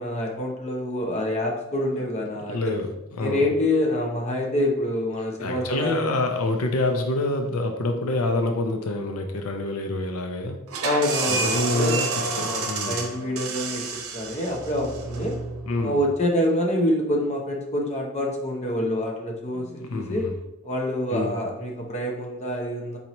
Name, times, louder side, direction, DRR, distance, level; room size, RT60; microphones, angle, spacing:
voice 1, 0.0-2.7 3.2-6.1 10.8-15.4 15.8-20.3 20.6-23.0, left 1 dB, 30° left, 0 dB, 0.7 m, -26 dB
voice 2, 2.5-3.4 5.4-10.6 11.3-13.0 15.7-16.0 19.5-20.3 21.1-21.3, left 2 dB, 80° left, 4 dB, 0.6 m, -27 dB
sound 1, 10.7-16.1, right 3 dB, 75° right, 0.7 m, -29 dB
4.4 x 4.1 x 2.9 m, 0.92 s
head